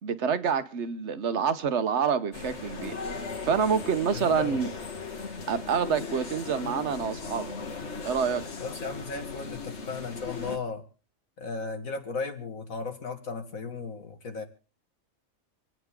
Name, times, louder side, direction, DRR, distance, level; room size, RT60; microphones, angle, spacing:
voice 1, 0.0-4.7 5.5-7.5 8.0-8.4, right 6 dB, 60° right, 1.2 m, -27 dB
sound 1, 2.3-10.6, left 4 dB, 55° left, 2.2 m, -38 dB
voice 2, 4.1-4.6 8.6-10.8 11.4-14.4, left 4 dB, 80° left, 2.5 m, -35 dB
27.0 x 9.4 x 3.7 m
omnidirectional pair, 1.4 m